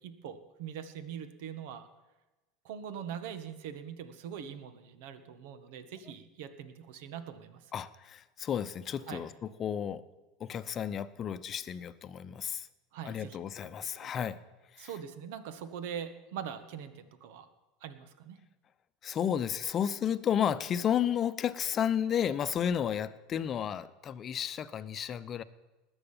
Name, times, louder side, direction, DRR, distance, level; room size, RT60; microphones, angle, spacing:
voice 1, 0.0-1.9 2.6-7.7 9.1-9.2 12.9-13.4 14.0-14.3 14.8-17.5 17.8-18.4, right 8 dB, 65° right, 10 dB, 1.5 m, -42 dB
voice 2, 7.7-10.0 10.4-12.7 13.0-14.4 14.8-14.9 19.0-25.4, left 9 dB, 40° left, 14 dB, 0.8 m, -32 dB
20.0 x 8.1 x 5.7 m, 1.1 s
hypercardioid pair, 85°, 0 cm